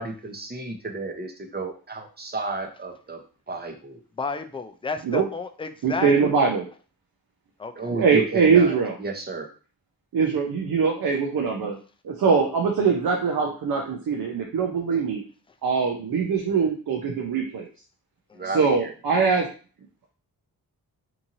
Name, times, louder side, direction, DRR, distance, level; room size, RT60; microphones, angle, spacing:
voice 1, 0.0-3.2 3.5-4.0 7.8-8.7 9.0-9.5 18.3-18.9, right 3 dB, 25° right, 2 dB, 0.8 m, -33 dB
voice 2, 4.2-6.4 7.6-7.9 18.3-18.5, left 4 dB, 15° left, 7 dB, 0.3 m, -32 dB
voice 3, 5.8-6.6 7.9-8.9 10.1-11.7 12.0-15.2 15.6-17.7 18.5-19.5, right 5 dB, 65° right, 1 dB, 0.7 m, -22 dB
2.9 x 2.6 x 2.6 m, 0.38 s
cardioid pair, 55°, 37 cm